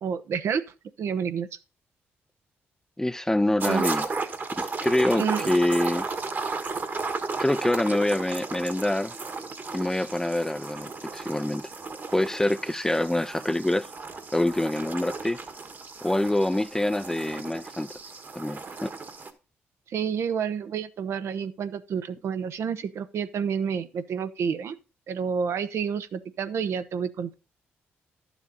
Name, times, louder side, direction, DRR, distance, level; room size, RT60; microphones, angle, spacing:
voice 1, 0.0-0.6 1.0-1.5 3.6-3.9 5.2-5.5 19.9-24.8 25.1-27.3, right 7 dB, 70° right, 0.8 m, -29 dB
voice 2, 3.0-4.0 4.5-6.1 7.4-9.1 9.7-11.6 12.1-13.9 14.3-15.4 16.0-17.9 18.3-18.9, left 1 dB, 10° left, 0.5 m, -25 dB
sound 1, 3.6-19.3, right 4 dB, 45° right, 1.5 m, -34 dB
11.0 x 7.1 x 4.0 m
cardioid pair, 70°, 5 cm